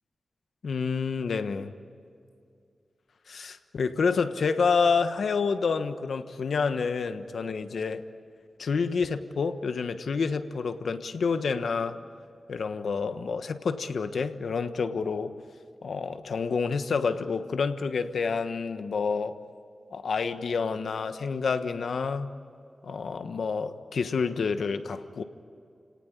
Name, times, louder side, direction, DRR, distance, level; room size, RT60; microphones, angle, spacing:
voice 1, 0.6-1.7 3.3-8.0 8.6-12.0 12.5-15.3 15.8-19.4 19.9-22.3 22.8-25.2, left 5 dB, 80° left, 9 dB, 1.3 m, -28 dB
30.0 x 18.0 x 9.7 m, 2.4 s
wide cardioid pair, 100°, 0 cm